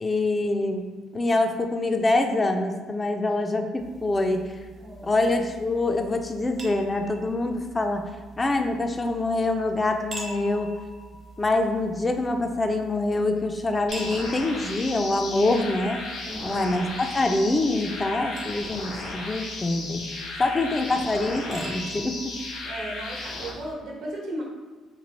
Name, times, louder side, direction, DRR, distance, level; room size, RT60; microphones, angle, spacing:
voice 1, 0.0-4.5 5.0-8.1 8.4-10.7 11.4-16.0 16.4-20.1 20.4-22.3, left 2 dB, 20° left, 5 dB, 0.3 m, -25 dB
sound 1, 3.8-23.7, right 2 dB, 40° right, 0.7 m, -45 dB
voice 2, 4.7-5.2 16.2-16.6 22.6-24.4, right 1 dB, 70° right, -2 dB, 1.0 m, -36 dB
sound 2, 13.9-23.5, left 2 dB, 75° left, 0.9 m, -35 dB
3.0 x 2.7 x 4.0 m, 1.4 s
cardioid pair, 125°, 0 cm